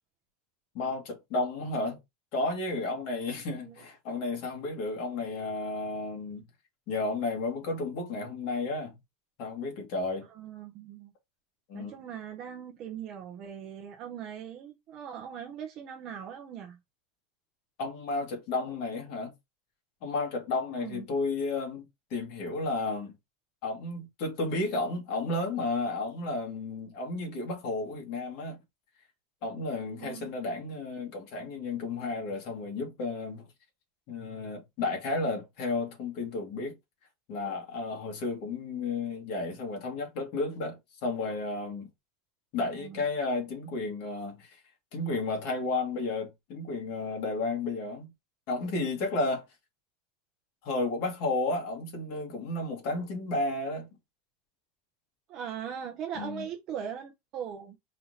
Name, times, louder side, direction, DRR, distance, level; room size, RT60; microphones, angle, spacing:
voice 1, 0.7-2.0 2.3-6.4 6.9-9.0 9.4-10.3 11.7-11.9 17.8-19.3 20.0-21.8 22.1-23.1 23.6-28.6 29.4-33.5 34.1-36.8 37.3-41.9 42.5-44.6 44.9-48.1 48.5-49.4 50.6-53.9 56.2-56.4, left 2 dB, 45° left, 1.8 m, -32 dB
voice 2, 3.4-3.8 10.2-11.1 11.7-16.8 20.7-21.1 30.0-30.3 42.7-43.0 55.3-57.8, right 8 dB, 35° right, 0.6 m, -40 dB
4.2 x 2.7 x 3.9 m
supercardioid pair, 170°, 0 cm